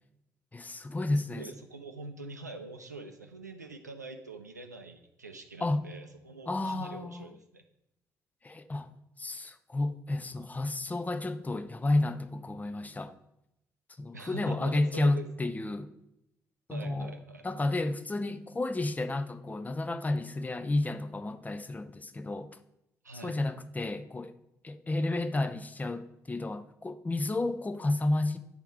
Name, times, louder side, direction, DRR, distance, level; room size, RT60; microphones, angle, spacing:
voice 1, 0.5-1.4 5.6-5.8 6.5-7.3 8.4-8.9 9.2-13.1 14.0-15.9 16.7-17.1 17.4-22.5 23.2-24.3 24.6-28.4, left 2 dB, 20° left, 10 dB, 0.5 m, -31 dB
voice 2, 1.3-7.6 14.1-15.3 16.7-17.5 23.0-23.4, right 3 dB, 85° right, 6 dB, 0.4 m, -44 dB
9.5 x 3.5 x 4.6 m, 0.84 s
figure-of-eight pair, 45°, 9 cm